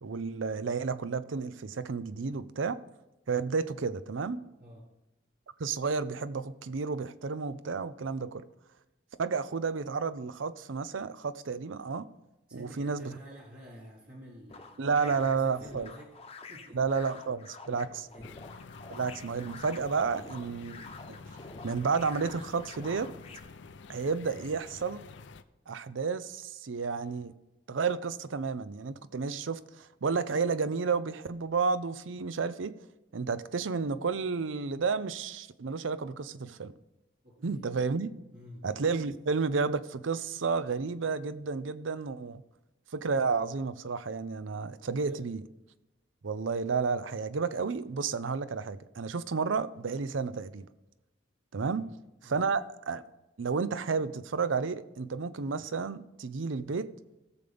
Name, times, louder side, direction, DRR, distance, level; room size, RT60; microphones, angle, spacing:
voice 1, 0.0-2.8 3.3-4.4 5.6-8.5 9.2-12.1 12.5-13.1 14.8-15.9 16.7-18.1 18.9-20.8 21.6-23.1 23.9-25.0 25.7-27.3 27.7-32.8 33.1-36.7 37.4-38.1 38.6-42.4 42.9-45.4 46.2-50.7 51.5-51.9 52.2-53.0 53.4-56.9, right 5 dB, 90° right, 0.6 m, -31 dB
voice 2, 12.5-16.2 16.5-16.8 17.9-18.3 37.2-37.7 38.3-38.7 44.9-45.3 51.7-52.0 52.2-52.5, equal, 50° right, 1.7 m, -50 dB
sound 1, 14.5-23.4, left 4 dB, 30° left, 0.9 m, -48 dB
sound 2, 18.2-25.4, left 4 dB, 70° left, 0.5 m, -49 dB
17.5 x 6.9 x 3.5 m
head